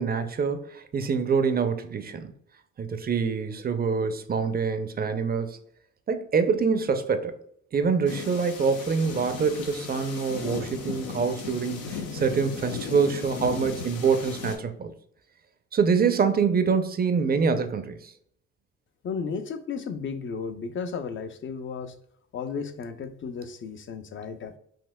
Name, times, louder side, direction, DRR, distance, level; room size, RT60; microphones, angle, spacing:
voice 1, 0.0-2.3 2.8-5.6 6.1-7.3 7.7-14.9 15.7-18.1, right 5 dB, 30° right, 0.5 m, -25 dB
sound 1, 8.1-14.6, left 5 dB, 85° left, 0.9 m, -36 dB
voice 2, 19.0-21.9 22.3-24.5, left 5 dB, 40° left, 0.5 m, -34 dB
5.4 x 2.8 x 2.2 m
cardioid pair, 90°, 30 cm